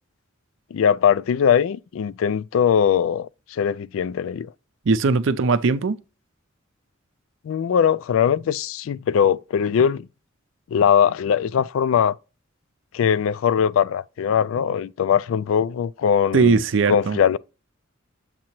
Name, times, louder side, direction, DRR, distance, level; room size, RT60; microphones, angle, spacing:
voice 1, 0.7-4.5 7.4-10.1 10.7-12.1 12.9-16.6 16.9-17.4, left 8 dB, 75° left, 0.3 m, -20 dB
voice 2, 4.9-6.0 16.3-17.2, right 4 dB, 70° right, 0.5 m, -19 dB
7.4 x 2.9 x 4.4 m
head